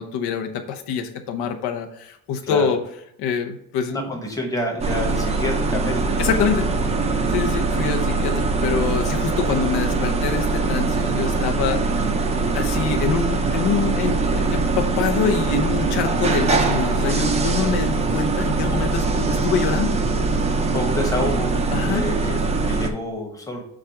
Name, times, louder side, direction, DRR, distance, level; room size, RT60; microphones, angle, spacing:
voice 1, 0.0-2.8 3.2-4.0 6.2-6.7 7.3-12.1 12.5-20.0 21.7-22.0, left 7 dB, 80° left, 5 dB, 0.9 m, -25 dB
voice 2, 3.9-6.0 20.7-21.5 21.9-23.6, left 1 dB, 10° left, 0 dB, 1.0 m, -28 dB
sound 1, 4.8-22.9, right 3 dB, 15° right, 0.4 m, -22 dB
7.4 x 2.5 x 5.7 m, 0.77 s
cardioid pair, 170°, 39 cm